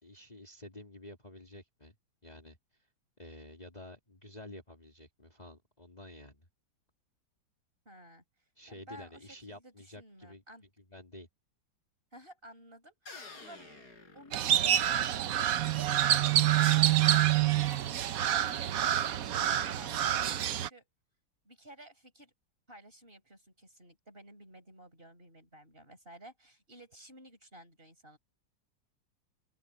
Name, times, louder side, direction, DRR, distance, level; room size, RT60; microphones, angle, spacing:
voice 1, 0.0-1.9 2.2-2.6 3.2-6.5 8.6-10.4 10.9-11.3, left 1 dB, 20° left, 2.8 m, -50 dB
voice 2, 7.9-8.2 8.7-10.7 12.1-13.7 14.1-15.6 16.0-20.9 21.4-22.3 22.7-28.2, right 1 dB, 30° right, 5.2 m, -54 dB
sound 1, 13.1-15.0, left 3 dB, 60° left, 5.0 m, -50 dB
Crow, 14.3-20.7, right 11 dB, 60° right, 1.0 m, -27 dB
open air
omnidirectional pair, 2.0 m